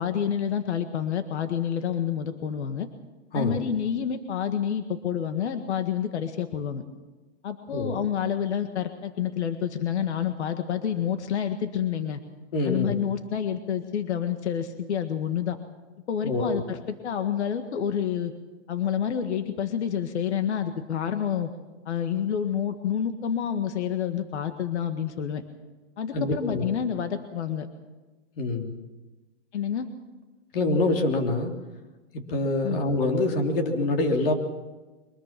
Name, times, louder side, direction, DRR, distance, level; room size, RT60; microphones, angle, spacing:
voice 1, 0.0-2.9 3.3-6.8 7.4-12.2 12.6-15.6 16.1-18.3 18.7-21.5 21.8-25.4 26.0-27.7 29.5-29.9 32.6-32.8, left 8 dB, 70° left, 8 dB, 1.8 m, -28 dB
voice 2, 12.5-12.9 16.2-16.6 26.1-26.7 28.4-28.7 30.5-31.5 32.3-34.3, left 2 dB, 50° left, 3 dB, 3.4 m, -25 dB
23.5 x 21.0 x 6.0 m, 1.2 s
hypercardioid pair, 165°, 35 cm